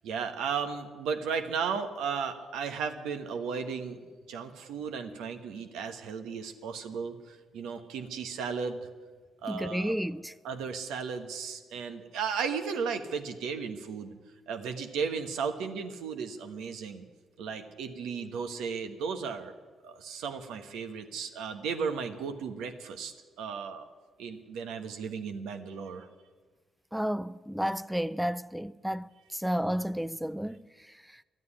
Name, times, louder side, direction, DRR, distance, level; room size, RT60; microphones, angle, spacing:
voice 1, 0.0-4.0 4.3-8.9 9.4-9.9 10.4-14.1 14.5-17.0 17.4-19.5 19.8-23.8 24.2-26.1, right 6 dB, 90° right, 1.2 m, -35 dB
voice 2, 9.5-10.3 26.9-30.6, equal, ahead, 0.3 m, -31 dB
12.0 x 9.4 x 9.9 m
cardioid pair, 90°, 0 cm